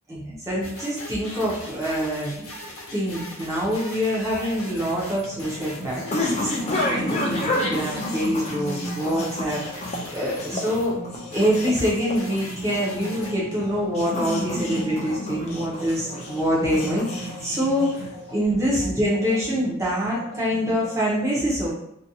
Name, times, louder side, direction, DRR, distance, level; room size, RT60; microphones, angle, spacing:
voice 1, 0.1-2.5 2.9-6.5 6.9-9.8 10.1-11.0 11.3-21.7, equal, 15° right, -6 dB, 0.6 m, -25 dB
sound 1, 0.6-10.9 11.3-13.3, left 1 dB, 80° left, 0.8 m, -40 dB
sound 2, 4.8-18.3, left 1 dB, 30° left, 0.3 m, -30 dB
sound 3, 5.1-20.9, right 1 dB, 65° right, 1.1 m, -41 dB
2.5 x 2.2 x 2.6 m, 0.78 s
head